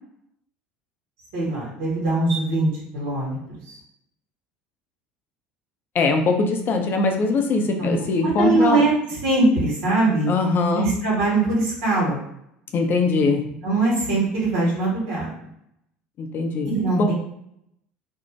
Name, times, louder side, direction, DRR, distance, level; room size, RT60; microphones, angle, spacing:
voice 1, 1.3-3.8 7.8-7.9 8.2-8.9 9.2-10.3 10.7-12.2 13.6-15.3 16.6-17.1, right 2 dB, 70° right, -5 dB, 1.2 m, -22 dB
voice 2, 5.9-8.8 10.3-10.9 12.7-13.4 16.2-16.7 17.0-17.1, left 3 dB, 45° left, 4 dB, 0.5 m, -21 dB
2.6 x 2.1 x 3.1 m, 0.75 s
hypercardioid pair, 70°, 5 cm